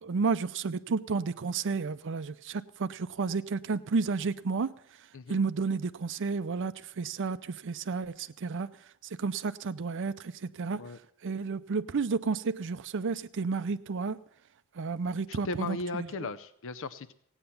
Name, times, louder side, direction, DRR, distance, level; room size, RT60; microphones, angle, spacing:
voice 1, 0.0-4.7 5.3-8.7 9.2-10.3 10.6-10.8 11.2-14.2 14.8-16.1, right 4 dB, 60° right, 0.5 m, -31 dB
voice 2, 15.3-17.2, left 3 dB, 60° left, 0.6 m, -37 dB
16.5 x 8.9 x 6.9 m
head